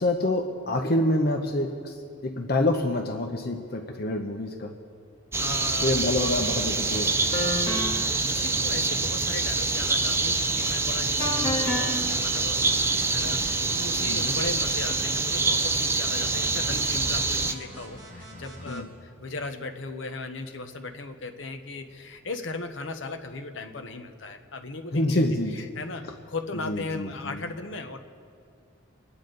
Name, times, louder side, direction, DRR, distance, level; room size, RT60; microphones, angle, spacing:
voice 1, 0.0-4.7 5.8-7.2 14.0-14.4 18.7-18.8 24.9-25.5 26.6-27.4, left 1 dB, 50° left, 3 dB, 0.8 m, -26 dB
sound 1, 5.3-17.5, right 3 dB, 10° right, 0.4 m, -26 dB
voice 2, 5.4-6.1 7.5-25.2 25.5-28.0, left 3 dB, 65° left, 6 dB, 1.0 m, -37 dB
sound 2, 6.5-6.7 7.3-8.1 11.2-11.9, left 1 dB, 35° left, 3.1 m, -29 dB
sound 3, 11.7-15.1 16.0-18.8, right 1 dB, 40° right, 3.0 m, -44 dB
25.5 x 9.7 x 3.9 m, 2.4 s
head